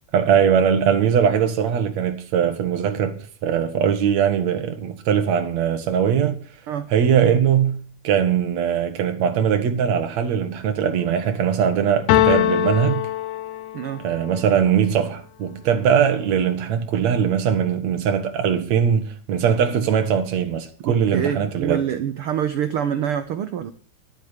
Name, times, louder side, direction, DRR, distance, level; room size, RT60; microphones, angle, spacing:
voice 1, 0.1-6.4 6.9-13.1 14.0-21.8, right 8 dB, 60° right, 2.7 m, -21 dB
sound 1, 12.1-14.0, left 13 dB, 90° left, 2.5 m, -21 dB
voice 2, 20.8-23.7, right 9 dB, 80° right, 1.2 m, -26 dB
12.5 x 8.3 x 8.2 m
omnidirectional pair, 3.6 m